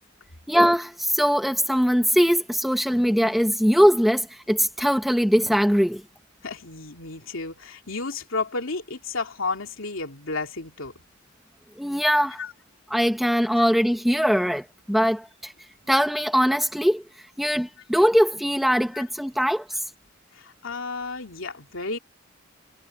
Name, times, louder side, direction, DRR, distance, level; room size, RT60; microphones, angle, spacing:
voice 1, 0.5-6.0 11.8-12.4 12.9-15.5 15.9-17.0 17.4-19.7, equal, ahead, 1.7 m, -21 dB
voice 2, 6.4-10.9 12.4-12.5 13.6-13.7 18.9-19.0 20.3-22.0, left 3 dB, 80° left, 2.7 m, -32 dB
head